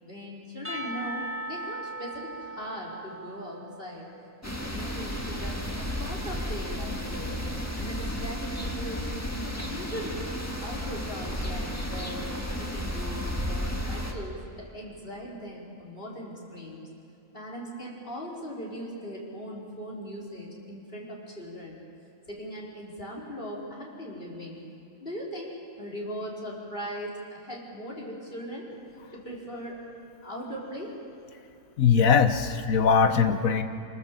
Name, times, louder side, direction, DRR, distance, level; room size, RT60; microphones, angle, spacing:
voice 1, 0.0-4.1 4.4-7.4 7.7-9.0 9.4-10.3 10.6-16.8 17.3-21.8 22.3-24.6 25.0-28.7 29.1-29.8 30.2-30.9, equal, 40° left, -4 dB, 4.7 m, -39 dB
Percussion / Church bell, 0.6-4.3, right 1 dB, 10° right, 1.3 m, -38 dB
sound 1, 4.4-14.1, equal, 10° left, 1.9 m, -33 dB
voice 2, 31.8-33.6, left 6 dB, 75° left, 9 dB, 1.5 m, -21 dB
26.5 x 18.5 x 7.6 m, 2.7 s
omnidirectional pair, 1.4 m